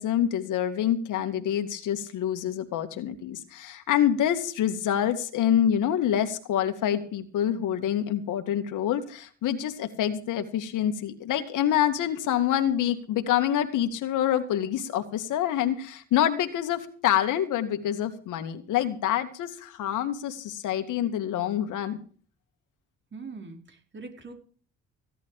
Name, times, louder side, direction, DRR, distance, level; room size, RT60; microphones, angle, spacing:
voice 1, 0.0-22.0, left 10 dB, 85° left, 8 dB, 2.2 m, -26 dB
voice 2, 23.1-24.3, right 4 dB, 40° right, 5 dB, 4.7 m, -42 dB
16.5 x 11.5 x 4.9 m, 0.43 s
cardioid pair, 90°, 30 cm